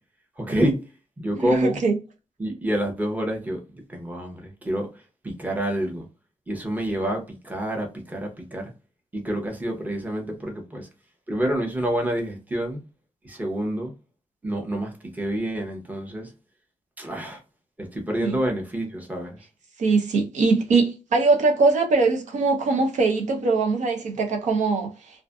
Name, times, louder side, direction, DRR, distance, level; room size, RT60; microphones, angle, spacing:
voice 1, 0.4-0.8 1.2-1.8 2.4-3.6 3.9-4.9 5.2-6.0 6.5-8.6 9.1-10.9 11.3-12.8 13.2-13.9 14.4-16.3 17.0-17.4 17.8-19.4, right 1 dB, 15° right, 0.7 m, -27 dB
voice 2, 1.3-2.0 18.2-18.4 19.8-25.2, right 3 dB, 75° right, 0.6 m, -22 dB
2.5 x 2.4 x 2.3 m
wide cardioid pair, 150°, 12 cm